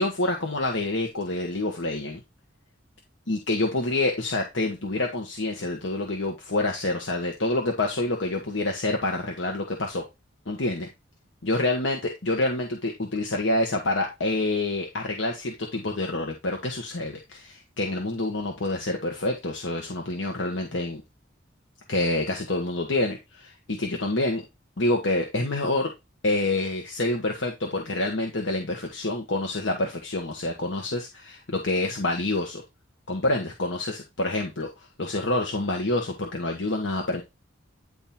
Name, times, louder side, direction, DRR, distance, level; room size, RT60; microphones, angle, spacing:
voice 1, 0.0-2.2 3.3-10.0 10.5-10.9 11.4-21.0 21.9-24.4 24.8-25.9 26.2-32.6 33.1-34.7 35.0-37.2, left 2 dB, 65° left, 1 dB, 1.4 m, -27 dB
9.9 x 3.7 x 4.3 m, 0.24 s
head